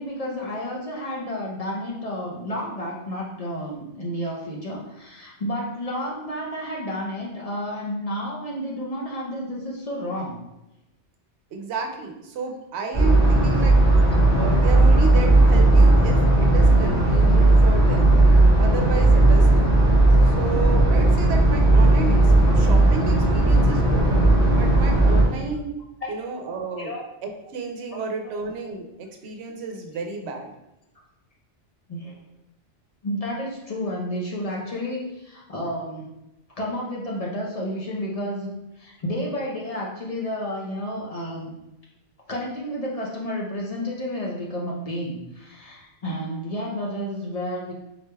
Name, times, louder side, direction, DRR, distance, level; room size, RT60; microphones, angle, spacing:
voice 1, 0.0-10.4 22.5-22.6 26.0-26.1 26.8-27.0 27.9-28.0 31.9-32.1 33.0-36.1 36.6-41.6 42.3-47.7, equal, 45° left, -2 dB, 0.5 m, -31 dB
voice 2, 11.5-13.8 14.3-18.1 18.6-19.7 20.2-24.1 24.5-25.7 26.1-26.9 27.2-30.5, right 4 dB, 70° right, 3 dB, 0.8 m, -32 dB
sound 1, 12.9-25.2, right 2 dB, 70° left, 1.8 m, -16 dB
3.9 x 3.2 x 2.2 m, 0.91 s
omnidirectional pair, 1.2 m